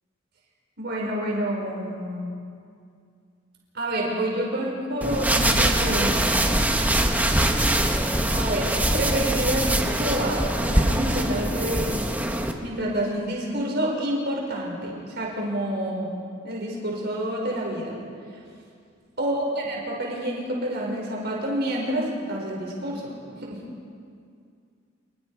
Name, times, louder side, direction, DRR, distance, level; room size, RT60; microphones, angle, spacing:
voice 1, 0.8-2.3 3.7-6.9 8.3-12.1 12.6-16.1 16.4-18.0 19.2-23.1 23.4-23.6, right 1 dB, 55° right, -2 dB, 5.4 m, -28 dB
sound 1, 5.0-12.5, right 1 dB, 10° right, 1.3 m, -23 dB
28.5 x 20.5 x 4.9 m, 2.3 s
head